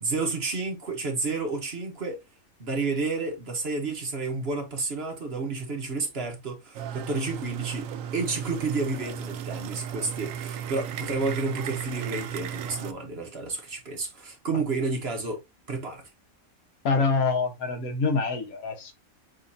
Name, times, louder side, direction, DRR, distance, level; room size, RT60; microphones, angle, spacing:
voice 1, 0.0-2.2 2.6-15.4 15.7-16.0, right 3 dB, 45° right, 1.4 m, -30 dB
sound 1, 6.7-12.9, right 9 dB, 75° right, 0.9 m, -35 dB
voice 2, 16.8-18.9, left 4 dB, 85° left, 1.6 m, -25 dB
6.3 x 3.0 x 2.6 m
omnidirectional pair, 1.5 m